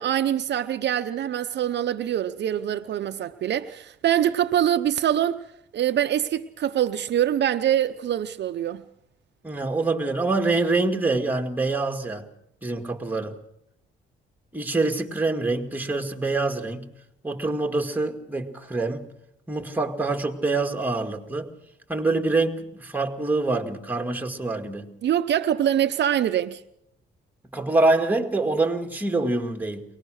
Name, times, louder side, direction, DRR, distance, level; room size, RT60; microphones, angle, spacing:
voice 1, 0.0-5.4 5.7-8.8 25.0-26.6, right 10 dB, 60° right, 0.7 m, -24 dB
voice 2, 9.4-12.2 12.6-13.3 14.5-16.8 17.2-19.0 19.5-21.5 21.9-24.9 27.5-29.8, right 3 dB, 10° right, 2.2 m, -25 dB
23.5 x 19.0 x 6.4 m
cardioid pair, 90°, 20 cm